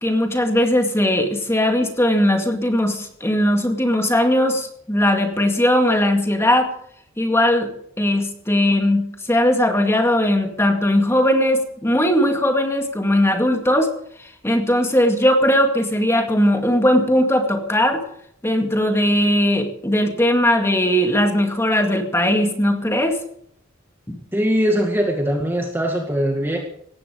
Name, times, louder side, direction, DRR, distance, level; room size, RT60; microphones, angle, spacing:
voice 1, 0.0-6.7 7.2-7.7 8.0-13.9 14.4-18.0 18.4-23.2 24.1-24.2, left 1 dB, 15° left, 4 dB, 2.1 m, -19 dB
voice 2, 24.3-26.6, equal, 10° right, 1 dB, 2.1 m, -21 dB
18.0 x 15.0 x 5.1 m, 0.67 s
head